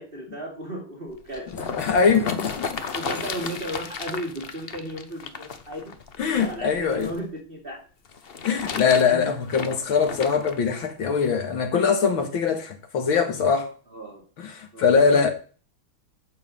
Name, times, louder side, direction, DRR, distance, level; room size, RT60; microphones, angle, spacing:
voice 1, 0.0-1.7 2.7-6.0 6.3-7.8 9.1-9.3 13.9-14.2 14.7-15.3, right 1 dB, 25° right, 2.9 m, -35 dB
sound 1, 1.1-7.2 8.1-10.6 11.2-11.3, left 5 dB, 55° left, 0.6 m, -34 dB
voice 2, 1.8-2.8 6.2-7.1 8.4-13.7 14.4-15.3, left 6 dB, 75° left, 2.5 m, -22 dB
8.9 x 6.7 x 7.9 m
omnidirectional pair, 2.3 m